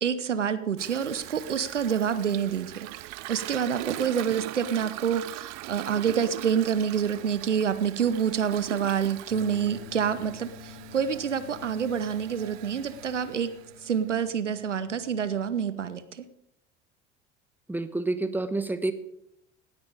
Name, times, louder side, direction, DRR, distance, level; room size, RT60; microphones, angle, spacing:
voice 1, 0.0-2.9 3.3-13.5 13.8-16.3, right 7 dB, 80° right, 13 dB, 0.8 m, -27 dB
Toilet flush, 0.8-14.2, right 17 dB, 50° right, 0.7 m, -41 dB
Bass guitar, 9.3-15.6, left 13 dB, 65° left, 1.1 m, -48 dB
voice 2, 17.7-18.9, right 2 dB, 5° right, 11 dB, 1.2 m, -28 dB
18.5 x 8.9 x 5.0 m, 0.80 s
figure-of-eight pair, 65°, 36 cm